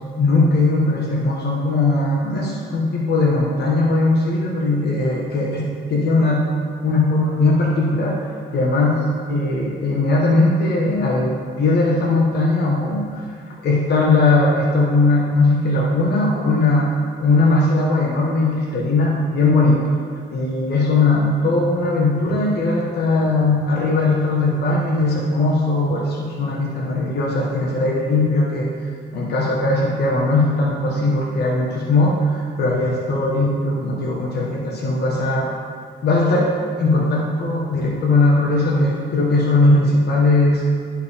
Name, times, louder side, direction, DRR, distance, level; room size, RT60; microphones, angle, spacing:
voice 1, 0.2-5.6 5.9-6.4 6.8-8.2 8.5-13.3 13.6-16.9 17.2-19.9 20.3-28.7 29.1-35.5 36.0-36.5 36.8-40.6, left 2 dB, 55° left, -4 dB, 1.2 m, -19 dB
10.5 x 4.8 x 3.5 m, 2.1 s
cardioid pair, 90°, 20 cm